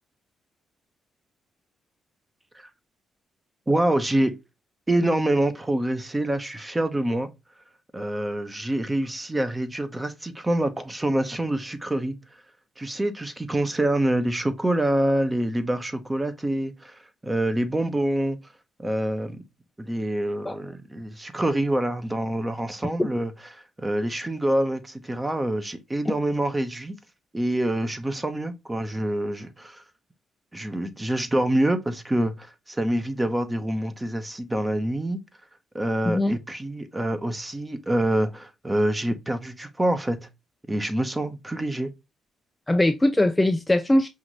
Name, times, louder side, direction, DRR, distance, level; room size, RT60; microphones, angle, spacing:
voice 1, 3.7-4.4 4.9-7.3 7.9-12.2 12.8-18.4 18.8-19.4 19.8-27.0 27.3-29.8 30.5-35.2 35.7-40.3 40.7-41.9, right 1 dB, 15° right, 0.8 m, -26 dB
voice 2, 36.1-36.4 42.7-44.1, left 1 dB, 10° left, 0.4 m, -21 dB
5.6 x 2.6 x 3.1 m
cardioid pair, 90°, 0 cm